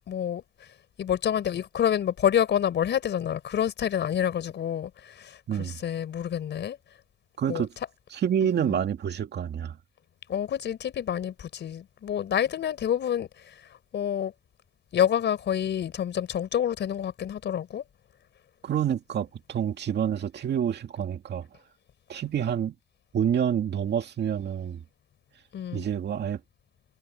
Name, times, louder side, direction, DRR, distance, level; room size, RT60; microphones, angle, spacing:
voice 1, 0.1-0.4 1.0-6.8 7.5-7.7 8.6-8.8 10.3-13.5 13.9-14.3 14.9-17.8 25.5-25.9, left 9 dB, 65° left, 4.3 m, -28 dB
voice 2, 5.5-5.8 7.4-7.7 8.1-9.8 18.6-21.5 22.1-22.7 23.1-24.8 25.7-26.4, right 9 dB, 60° right, 2.3 m, -28 dB
cardioid pair, 90°, 20 cm